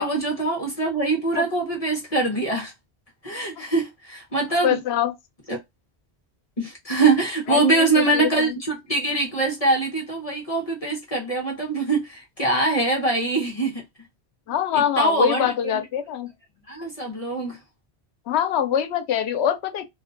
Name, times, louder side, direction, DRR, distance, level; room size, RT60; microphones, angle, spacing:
voice 1, 0.0-2.7 3.2-4.8 5.5-5.6 6.6-13.8 14.7-15.8 16.7-17.6, right 3 dB, 40° left, 0.7 m, -23 dB
voice 2, 4.6-5.1 7.5-8.6 14.5-16.3 18.3-19.9, left 10 dB, 85° left, 0.8 m, -24 dB
2.4 x 2.1 x 2.4 m
omnidirectional pair, 1.1 m